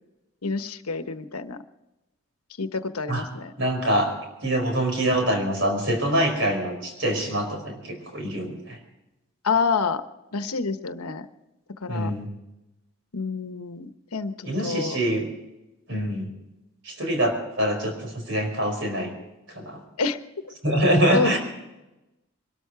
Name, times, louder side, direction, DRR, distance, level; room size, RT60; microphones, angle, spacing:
voice 1, 0.4-1.6 2.6-3.5 9.4-10.0 10.3-11.3 11.8-12.1 13.1-15.0 20.0-20.2 21.1-21.4, left 4 dB, 90° left, 10 dB, 1.2 m, -27 dB
voice 2, 3.6-4.1 4.4-8.8 11.9-12.3 14.4-15.3 15.9-16.3 16.8-19.1 19.5-19.8 20.6-21.4, right 1 dB, 55° right, 3 dB, 4.8 m, -24 dB
23.0 x 13.0 x 4.8 m, 0.98 s
head